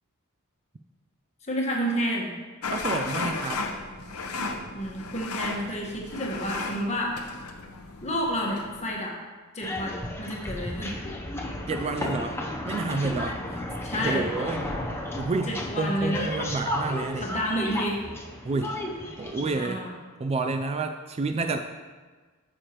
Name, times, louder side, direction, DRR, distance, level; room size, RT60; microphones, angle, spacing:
voice 1, 1.5-2.4 4.7-7.2 8.0-9.1 9.5-11.0 13.8-14.3 15.5-16.3 17.2-18.0 19.4-19.9, equal, 30° left, -2 dB, 1.3 m, -30 dB
sound 1, 2.6-8.9, left 3 dB, 85° left, 0.7 m, -34 dB
voice 2, 2.7-3.6 11.7-12.4 12.7-13.6 13.9-14.7 15.2-17.3 18.4-18.8 19.2-19.8 20.2-21.6, right 3 dB, 30° right, 6 dB, 0.3 m, -29 dB
sound 2, 9.6-19.5, left 1 dB, 10° left, 0.7 m, -33 dB
8.9 x 6.6 x 3.0 m, 1.4 s
head